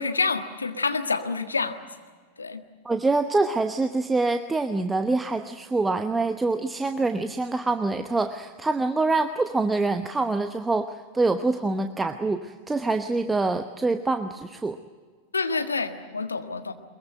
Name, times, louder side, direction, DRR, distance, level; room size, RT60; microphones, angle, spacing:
voice 1, 0.0-1.8 2.4-2.6 15.3-16.7, left 4 dB, 75° left, 7 dB, 1.6 m, -27 dB
voice 2, 2.8-14.8, right 3 dB, 10° right, 8 dB, 0.9 m, -25 dB
22.5 x 22.0 x 8.9 m, 1.5 s
figure-of-eight pair, 90°, 0 cm